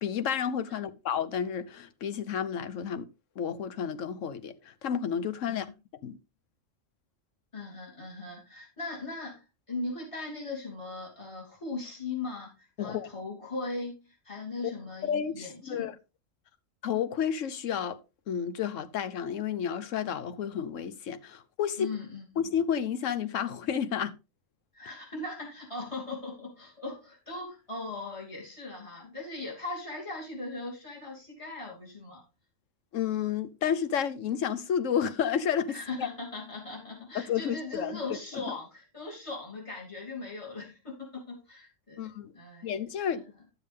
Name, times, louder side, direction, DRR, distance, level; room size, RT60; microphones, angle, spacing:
voice 1, 0.0-3.1 3.4-5.7 6.0-6.2 12.8-13.1 14.6-14.7 15.0-15.9 16.8-18.0 18.3-21.9 22.4-24.1 32.9-36.1 37.1-38.0 38.3-38.4 42.0-42.3 42.6-43.3, left 8 dB, 75° left, 1.2 m, -31 dB
voice 2, 7.5-16.0 21.8-22.2 24.7-32.2 35.7-42.7 43.1-43.2, left 3 dB, 25° left, 3.0 m, -39 dB
12.0 x 7.1 x 3.4 m
omnidirectional pair, 1.3 m